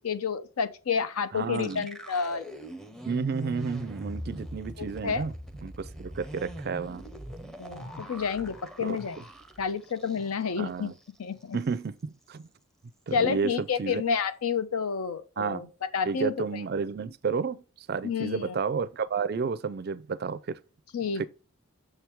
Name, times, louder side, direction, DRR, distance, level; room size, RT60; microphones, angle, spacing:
voice 1, 0.0-2.5 4.8-5.2 7.6-9.2 9.6-10.9 11.2-11.6 13.1-15.7 15.9-16.6 18.0-18.6 20.9-21.3, left 6 dB, 85° left, 0.6 m, -30 dB
voice 2, 1.3-1.9 3.1-5.3 5.6-7.0 8.8-9.0 10.6-10.9 11.5-12.4 13.1-14.0 15.4-15.7 16.1-20.6 21.2-21.3, right 5 dB, 45° right, 0.3 m, -31 dB
sound 1, 1.5-10.6 10.9-11.0 11.4-11.8, right 1 dB, ahead, 0.6 m, -42 dB
6.7 x 4.5 x 3.5 m
head